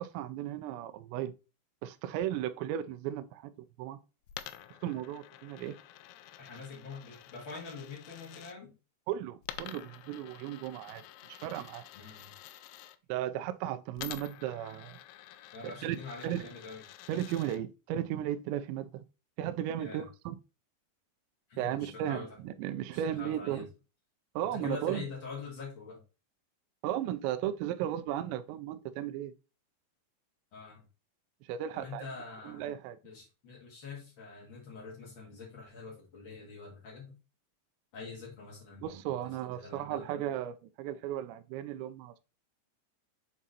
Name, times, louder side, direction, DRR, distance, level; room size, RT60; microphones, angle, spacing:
voice 1, 0.0-1.3 1.8-3.5 3.8-4.0 4.8-5.8 9.1-11.0 11.3-11.9 13.1-15.0 15.6-16.0 16.2-16.5 17.1-19.0 19.4-20.4 21.6-23.7 24.4-25.1 26.8-29.3 31.5-32.0 32.4-33.0 38.8-42.2, right 11 dB, 85° right, 2.6 m, -35 dB
Coin (dropping), 4.3-8.6 9.4-13.0 14.0-17.6, left 13 dB, 85° left, 2.8 m, -49 dB
voice 2, 6.4-8.7 11.9-12.3 15.5-16.8 19.8-20.1 21.5-22.4 22.9-23.7 24.4-26.0 30.5-30.9 31.7-32.7 33.0-37.1 37.9-38.8 39.2-40.0, left 4 dB, 55° left, 1.3 m, -45 dB
7.4 x 3.5 x 4.1 m
omnidirectional pair, 5.4 m